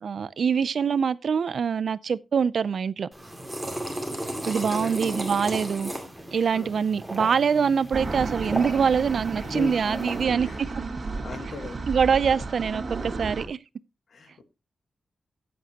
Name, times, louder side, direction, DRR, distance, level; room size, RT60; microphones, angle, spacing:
voice 1, 0.0-3.1 4.5-5.9 6.3-10.5 11.9-13.6, right 6 dB, 60° right, 0.4 m, -24 dB
sound 1, 3.1-10.2, right 1 dB, 5° right, 2.2 m, -35 dB
voice 2, 4.4-5.0 6.5-6.8 9.4-10.6 11.2-11.8 12.3-12.5 14.1-14.4, left 3 dB, 60° left, 1.5 m, -38 dB
sound 2, 7.9-13.4, right 3 dB, 40° right, 2.0 m, -33 dB
15.0 x 8.0 x 2.9 m
wide cardioid pair, 150°, 0 cm